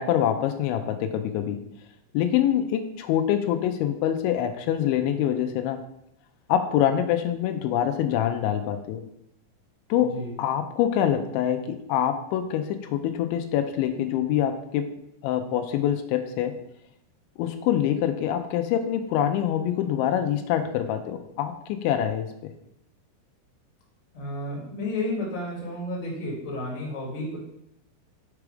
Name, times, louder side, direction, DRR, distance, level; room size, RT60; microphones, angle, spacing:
voice 1, 0.0-1.6 2.1-5.8 6.5-9.0 9.9-14.9 15.2-16.5 17.4-22.3, left 10 dB, 85° left, 7 dB, 3.1 m, -25 dB
voice 2, 10.0-10.4 24.1-27.4, left 1 dB, 25° left, -4 dB, 1.7 m, -32 dB
7.8 x 4.9 x 4.9 m, 0.77 s
omnidirectional pair, 5.2 m